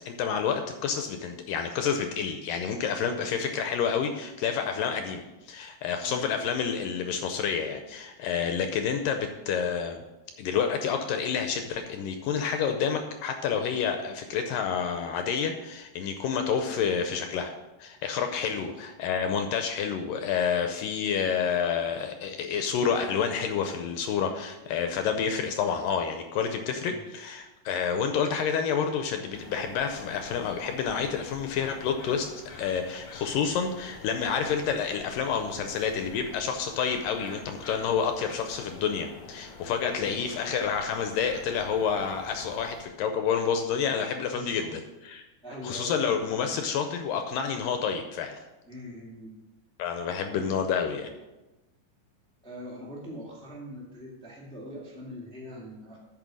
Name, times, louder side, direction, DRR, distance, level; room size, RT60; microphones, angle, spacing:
voice 1, 0.1-10.0 10.4-17.5 17.8-32.3 32.6-45.3 45.6-48.4 49.8-51.1, left 7 dB, 80° left, 6 dB, 2.1 m, -29 dB
voice 2, 6.0-6.3 18.4-18.8 26.8-27.0 39.8-40.2 44.3-44.8 45.4-45.9 48.7-49.3 50.3-50.5 52.4-56.0, left 1 dB, 5° left, -4 dB, 0.4 m, -42 dB
sound 1, 29.3-42.8, left 4 dB, 50° left, 1.8 m, -47 dB
9.0 x 6.2 x 6.2 m, 1.1 s
omnidirectional pair, 4.2 m